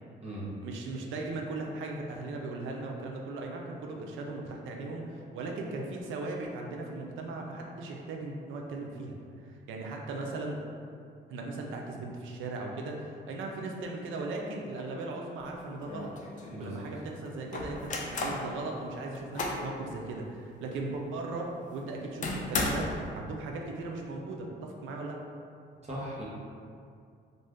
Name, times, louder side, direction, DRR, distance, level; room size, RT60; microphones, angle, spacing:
voice 1, 0.6-9.2 9.4-10.6 11.3-25.2, right 2 dB, 80° right, 0 dB, 0.5 m, -38 dB
sound 1, 15.4-15.5 15.8-16.6 17.5-18.5 19.0-19.7 20.2-20.3 20.7-20.8 22.2-23.1, left 2 dB, 40° left, 0.4 m, -34 dB
voice 2, 16.5-16.8 25.8-26.2, right 1 dB, 35° right, -6 dB, 0.9 m, -38 dB
2.5 x 2.2 x 3.4 m, 2.4 s
cardioid pair, 90°, 20 cm